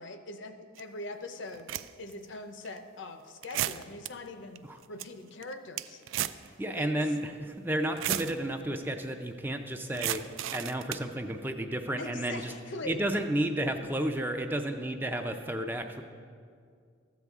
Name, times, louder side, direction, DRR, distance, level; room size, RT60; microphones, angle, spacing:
voice 1, 0.0-1.7 2.0-6.0 6.8-6.9 12.0-13.0, left 2 dB, 65° left, 7 dB, 0.6 m, -42 dB
sound 1, 0.8-0.9 1.5-2.1 2.7-2.8 3.4-4.1 4.6-4.7 4.8-5.1 5.4-6.5 6.7-6.8 7.8-8.3 9.9-11.1, right 13 dB, 80° right, 0.3 m, -33 dB
voice 2, 6.4-12.5 12.8-16.0, right 1 dB, 10° right, 5 dB, 0.4 m, -32 dB
13.0 x 8.1 x 3.6 m, 2.2 s
head